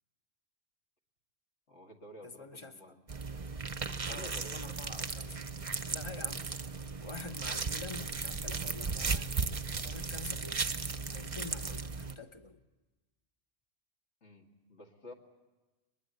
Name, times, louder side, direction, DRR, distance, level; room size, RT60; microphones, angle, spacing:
voice 1, 1.7-3.0 4.1-4.7 11.6-11.7 14.2-15.1, left 1 dB, 65° left, 1 dB, 2.4 m, -51 dB
voice 2, 2.2-3.0 4.0-5.5 5.9-6.5 7.0-9.3 9.8-10.7 11.1-12.6, left 3 dB, 25° left, 9 dB, 0.8 m, -47 dB
sound 1, 3.1-12.2, right 4 dB, 35° right, 0.8 m, -36 dB
22.5 x 21.5 x 8.0 m, 1.2 s
omnidirectional pair, 1.3 m